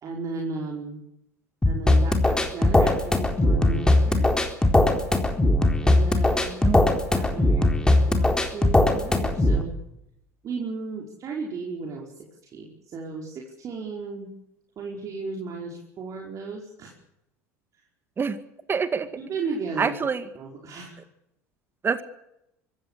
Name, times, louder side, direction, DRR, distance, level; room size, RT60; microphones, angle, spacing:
voice 1, 0.0-1.0 1.7-4.4 5.8-6.6 7.1-7.7 8.1-9.7 10.4-14.3 14.8-16.9 19.2-19.9 20.4-21.0, right 4 dB, 45° right, 0 dB, 5.2 m, -35 dB
sound 1, 1.6-9.6, left 2 dB, 10° left, 4.0 m, -20 dB
voice 2, 6.6-7.0 18.2-18.4 18.7-19.1 19.8-20.3 21.8-22.0, right 5 dB, 30° right, 12 dB, 1.9 m, -26 dB
24.5 x 16.0 x 8.4 m, 0.83 s
hypercardioid pair, 80°, 8 cm